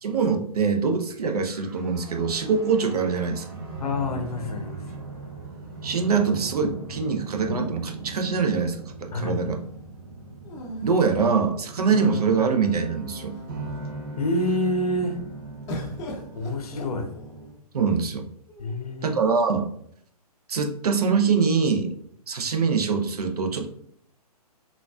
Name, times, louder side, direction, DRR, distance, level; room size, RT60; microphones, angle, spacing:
voice 1, 0.0-3.4 5.8-9.6 10.8-13.4 17.7-18.2 19.0-19.7 20.5-21.9 22.3-23.7, right 5 dB, 70° right, 4 dB, 0.6 m, -24 dB
sound 1, 1.1-17.5, right 2 dB, 40° right, 0.8 m, -39 dB
voice 2, 3.8-4.9 9.1-9.5 14.2-15.2 16.3-17.2 18.6-19.2, left 1 dB, 65° left, 6 dB, 0.6 m, -27 dB
sound 2, 7.4-8.5 10.4-12.0 12.7-12.8 13.1-13.7 15.7-17.6 18.5-19.2, left 1 dB, 20° left, 0.5 m, -40 dB
3.9 x 2.4 x 2.3 m, 0.65 s
figure-of-eight pair, 130°, 20 cm